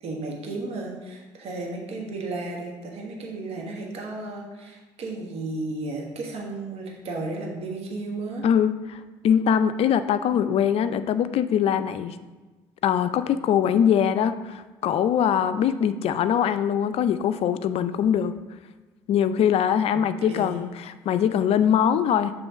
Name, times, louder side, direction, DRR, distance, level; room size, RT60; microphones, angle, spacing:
voice 1, 0.0-8.4 19.9-20.0 20.3-20.6, right 2 dB, 60° right, 0 dB, 1.3 m, -34 dB
voice 2, 8.4-12.2 12.8-18.3 19.1-22.3, left 8 dB, 60° left, 12 dB, 0.4 m, -22 dB
7.0 x 3.2 x 4.9 m, 1.2 s
supercardioid pair, 65°, 12 cm